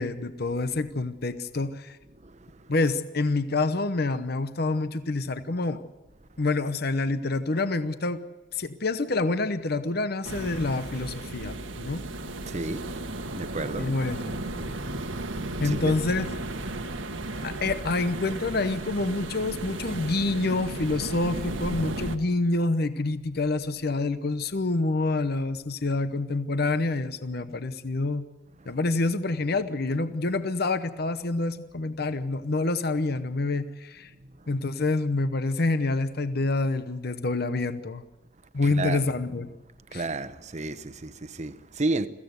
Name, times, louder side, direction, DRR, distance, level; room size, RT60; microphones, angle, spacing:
voice 1, 0.0-2.0 2.7-5.8 6.4-8.2 8.5-12.1 13.6-14.4 15.6-16.3 17.4-28.3 28.7-34.1 34.5-38.0 38.5-39.5 39.9-40.0, left 3 dB, 55° left, 0.9 m, -27 dB
voice 2, 2.2-2.7 12.5-13.0 13.4-13.9 15.6-15.9 38.7-39.0 39.9-42.1, right 2 dB, 35° right, 1.0 m, -32 dB
sound 1, 10.2-22.2, right 2 dB, 85° right, 1.7 m, -34 dB
22.5 x 15.5 x 8.0 m
head